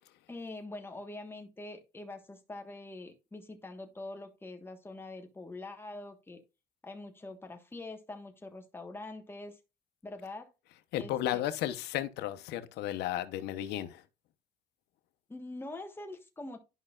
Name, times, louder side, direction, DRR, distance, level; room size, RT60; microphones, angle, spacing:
voice 1, 0.3-6.4 6.8-9.6 10.0-10.5 11.0-11.4 15.3-16.6, left 2 dB, 15° left, 1.4 m, -44 dB
voice 2, 10.7-14.0, left 12 dB, 85° left, 0.9 m, -34 dB
11.0 x 5.5 x 2.4 m
cardioid pair, 110°, 17 cm